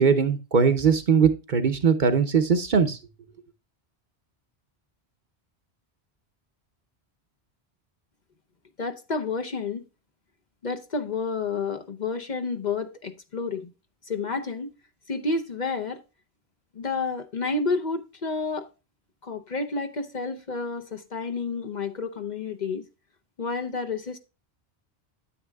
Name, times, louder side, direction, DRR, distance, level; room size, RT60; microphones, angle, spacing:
voice 1, 0.0-3.0, right 6 dB, 50° right, 0.9 m, -20 dB
voice 2, 8.8-9.8 10.6-13.7 14.1-14.7 15.1-16.0 16.7-18.7 19.2-22.9 23.4-24.2, left 4 dB, 45° left, 0.8 m, -30 dB
9.7 x 8.3 x 2.3 m
omnidirectional pair, 1.1 m